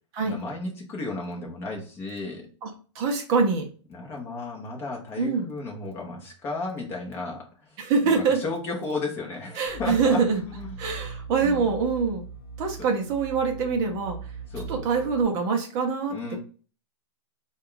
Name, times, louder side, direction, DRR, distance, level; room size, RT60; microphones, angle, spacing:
voice 1, 0.2-2.4 3.9-7.8 8.0-10.8 11.4-11.7 14.5-14.9 16.1-16.4, left 3 dB, 15° left, -1 dB, 0.9 m, -34 dB
voice 2, 2.6-3.7 5.2-5.5 7.8-8.4 9.6-10.4 10.8-12.3 12.6-14.2 14.7-16.4, right 5 dB, 20° right, 2 dB, 0.6 m, -25 dB
sound 1, 9.7-15.2, right 5 dB, 30° left, 1.4 m, -40 dB
3.8 x 2.4 x 3.8 m, 0.38 s
hypercardioid pair, 165°, 16 cm